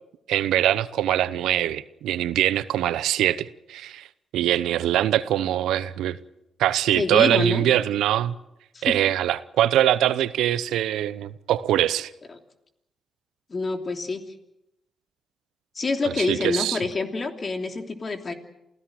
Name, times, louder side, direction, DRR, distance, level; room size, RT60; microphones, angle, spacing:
voice 1, 0.3-4.1 4.3-6.2 6.6-8.3 8.8-12.1 16.2-16.8, right 12 dB, 80° right, 0.8 m, -23 dB
voice 2, 6.9-7.7 8.7-8.9 12.3-12.4 13.5-14.2 15.7-18.3, left 3 dB, 45° left, 3.1 m, -27 dB
28.5 x 16.5 x 7.6 m
hypercardioid pair, 45°, 0 cm